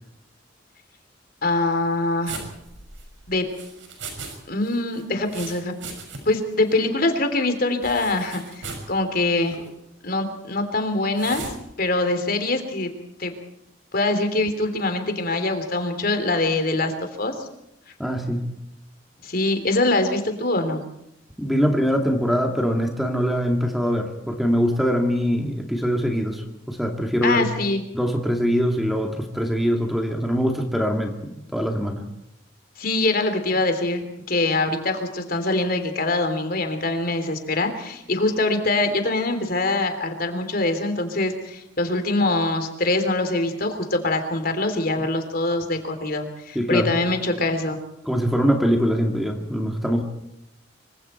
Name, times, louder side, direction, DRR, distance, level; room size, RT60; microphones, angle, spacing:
voice 1, 1.4-2.4 3.3-3.4 4.5-5.7 6.2-9.6 10.0-11.5 11.8-12.9 13.2-13.3 13.9-16.9 17.2-17.5 19.2-20.8 27.2-27.8 32.8-47.8, left 2 dB, 55° left, 7 dB, 3.4 m, -23 dB
sound 1, 2.2-4.4 4.6-6.4 6.7-6.8 7.8-8.9 9.4-9.7 11.1-11.6, right 4 dB, 90° right, 6.2 m, -37 dB
voice 2, 18.0-18.5 21.4-27.5 27.9-32.1 46.5-46.9 48.0-50.0, equal, ahead, 3 dB, 2.3 m, -23 dB
26.0 x 24.5 x 4.5 m, 0.82 s
head